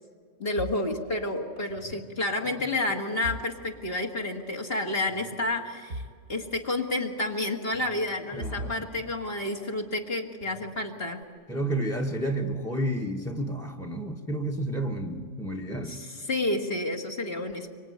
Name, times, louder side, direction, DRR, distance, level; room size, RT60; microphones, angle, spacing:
voice 1, 0.4-6.0 6.3-11.2 15.9-17.7, left 2 dB, 50° left, 2 dB, 2.0 m, -30 dB
sound 1, 0.6-2.1 2.4-4.5 5.1-6.2 6.5-6.6 7.7-9.8 10.4-11.2, right 1 dB, 85° right, 2.1 m, -42 dB
voice 2, 8.3-8.9 11.5-16.0, right 1 dB, ahead, 7 dB, 1.2 m, -31 dB
25.0 x 24.5 x 9.5 m, 2.1 s
omnidirectional pair, 1.3 m